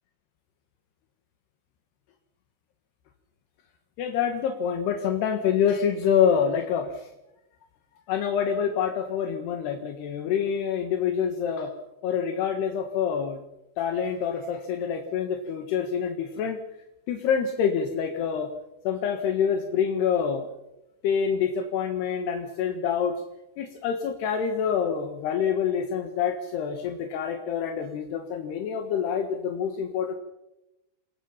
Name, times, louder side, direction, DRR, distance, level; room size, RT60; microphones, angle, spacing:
voice 1, 4.0-6.9 8.1-11.7 12.0-13.4 13.8-16.6 17.1-18.5 18.9-20.5 21.0-23.2 23.6-30.1, left 7 dB, 75° left, 5 dB, 3.5 m, -26 dB
27.5 x 21.0 x 5.7 m, 0.92 s
omnidirectional pair, 4.8 m